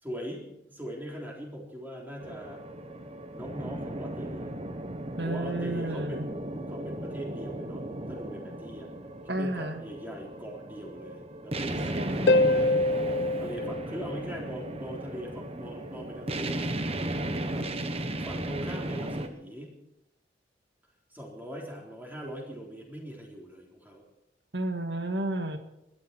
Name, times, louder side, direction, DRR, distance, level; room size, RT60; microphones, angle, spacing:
voice 1, 0.0-2.6 3.3-4.5 5.2-7.8 8.1-8.9 9.2-12.8 13.2-16.7 17.5-19.7 21.1-24.0, equal, 10° right, -1 dB, 3.8 m, -41 dB
sound 1, 2.2-19.3, right 1 dB, 35° right, 1.2 m, -36 dB
voice 2, 5.2-6.3 9.3-9.8 12.0-12.5 24.5-25.6, right 1 dB, 65° right, 7 dB, 1.8 m, -32 dB
Harp, 12.3-14.8 18.3-18.4, left 2 dB, 65° left, 0.7 m, -25 dB
20.5 x 12.0 x 4.6 m, 0.87 s
head